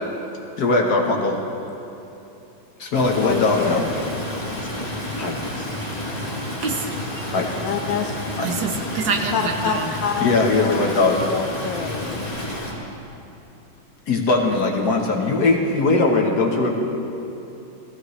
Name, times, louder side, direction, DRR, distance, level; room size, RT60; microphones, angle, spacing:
voice 1, 0.6-1.4 2.8-3.8 5.2-5.4 7.3-7.5 8.4-8.5 10.2-11.2 14.1-16.7, left 3 dB, 55° left, 1 dB, 1.5 m, -20 dB
Stream, 2.9-12.7, left 1 dB, 20° left, 2.6 m, -30 dB
voice 2, 3.2-3.8 7.4-8.2 9.3-12.2, left 7 dB, 75° left, 6 dB, 1.1 m, -27 dB
voice 3, 5.8-7.3 8.4-10.0, right 4 dB, 65° right, 4 dB, 1.4 m, -28 dB
18.5 x 14.5 x 3.2 m, 2.9 s
omnidirectional pair, 2.3 m